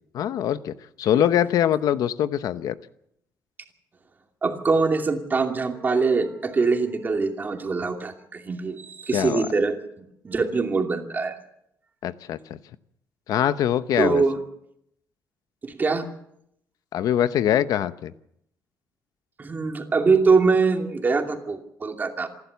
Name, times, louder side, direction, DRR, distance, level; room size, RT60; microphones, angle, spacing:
voice 1, 0.1-2.7 9.1-9.5 12.0-12.6 13.3-14.2 16.9-18.1, left 10 dB, 75° left, 13 dB, 0.9 m, -23 dB
voice 2, 4.4-11.4 14.0-14.4 15.6-16.1 19.4-22.3, right 4 dB, 30° right, 4 dB, 2.6 m, -23 dB
27.0 x 12.0 x 8.2 m, 0.75 s
cardioid pair, 130°, 6 cm